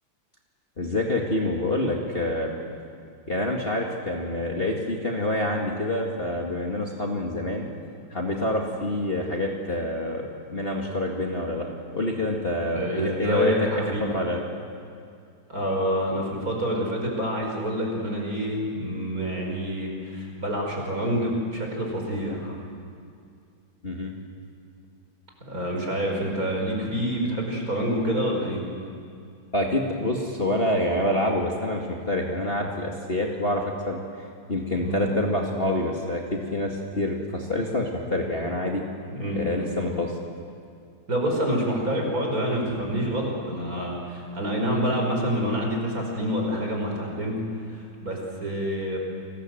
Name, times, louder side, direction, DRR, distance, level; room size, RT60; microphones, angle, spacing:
voice 1, 0.8-2.6 3.3-7.7 8.1-10.2 10.5-13.5 13.8-14.5 23.8-24.1 29.5-34.0 34.5-38.8 39.4-40.1, left 1 dB, 30° left, -1 dB, 2.2 m, -27 dB
voice 2, 12.7-14.1 15.5-22.6 25.5-28.6 34.8-35.1 39.1-39.7 41.1-47.4 47.7-49.0, equal, 45° right, 0 dB, 5.5 m, -27 dB
30.0 x 20.5 x 7.9 m, 2.3 s
omnidirectional pair, 2.2 m